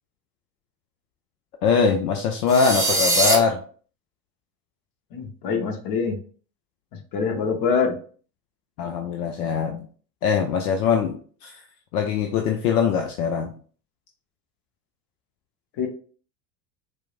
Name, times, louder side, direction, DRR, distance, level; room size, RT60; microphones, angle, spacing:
voice 1, 1.6-3.6 8.8-9.9 10.2-11.6 11.9-13.5, left 6 dB, 70° left, 3 dB, 0.6 m, -22 dB
sound 1, 2.5-3.4, right 2 dB, 5° right, 1.2 m, -21 dB
voice 2, 5.1-6.2 7.1-7.9 15.8-15.9, left 5 dB, 45° left, 3 dB, 1.0 m, -24 dB
4.5 x 2.1 x 2.4 m, 0.43 s
hypercardioid pair, 75°, 47 cm